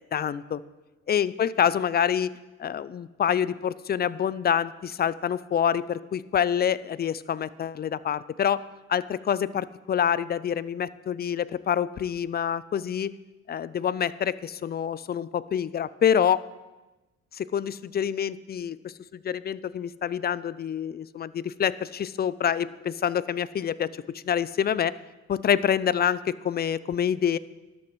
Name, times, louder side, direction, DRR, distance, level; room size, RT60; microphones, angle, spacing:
voice 1, 0.1-0.6 1.1-2.3 2.6-8.6 8.9-13.1 13.5-16.4 17.3-24.9 25.3-27.4, left 8 dB, 35° left, 18 dB, 0.4 m, -26 dB
13.5 x 11.5 x 3.1 m, 1.1 s
cardioid pair, 90°, 30 cm